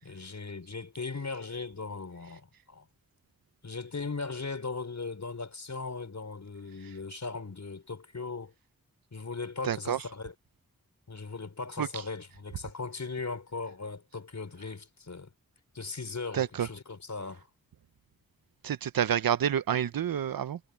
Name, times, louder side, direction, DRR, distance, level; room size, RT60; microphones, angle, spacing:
voice 1, 0.0-2.9 3.6-8.5 9.1-10.3 11.1-15.3 15.7-17.5, left 4 dB, 55° left, 5.2 m, -38 dB
voice 2, 9.6-10.0 11.8-11.9 16.3-16.7 18.6-20.6, right 9 dB, 75° right, 0.7 m, -28 dB
wide cardioid pair, 75°, 35 cm